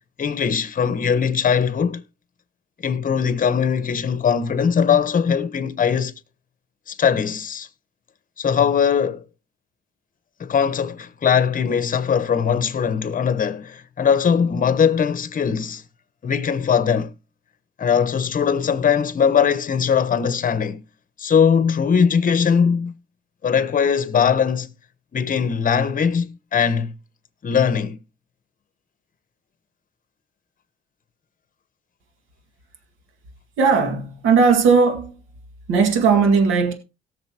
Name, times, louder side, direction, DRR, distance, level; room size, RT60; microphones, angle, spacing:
voice 1, 0.2-2.0 2.8-6.1 6.9-7.7 8.4-9.2 10.4-15.8 16.2-17.1 17.8-20.8 21.2-22.9 23.4-24.7 25.1-26.9 27.4-28.0, left 7 dB, 45° left, 1.1 m, -20 dB
voice 2, 33.6-35.2 35.7-36.7, right 5 dB, 90° right, 2.1 m, -17 dB
18.0 x 6.8 x 2.9 m
cardioid pair, 90°, 20 cm